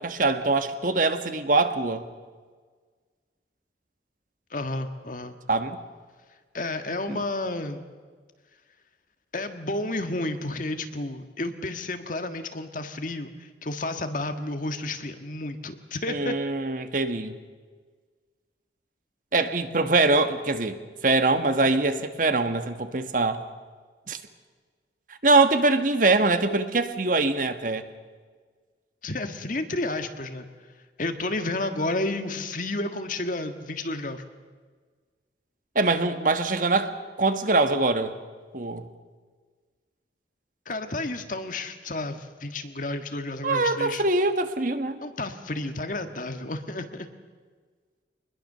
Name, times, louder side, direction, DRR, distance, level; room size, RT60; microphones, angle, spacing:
voice 1, 0.0-2.0 5.5-5.8 7.1-7.2 16.1-17.4 19.3-20.8 21.0-23.4 24.1-24.2 25.2-27.8 35.7-36.9 37.2-38.1 38.5-38.9 43.4-45.0, right 3 dB, 45° right, 9 dB, 1.5 m, -23 dB
voice 2, 4.5-5.4 6.5-7.8 9.3-16.4 29.0-30.5 31.0-34.2 40.6-44.0 45.0-47.1, left 2 dB, 45° left, 7 dB, 1.7 m, -31 dB
25.0 x 21.0 x 6.8 m, 1.5 s
head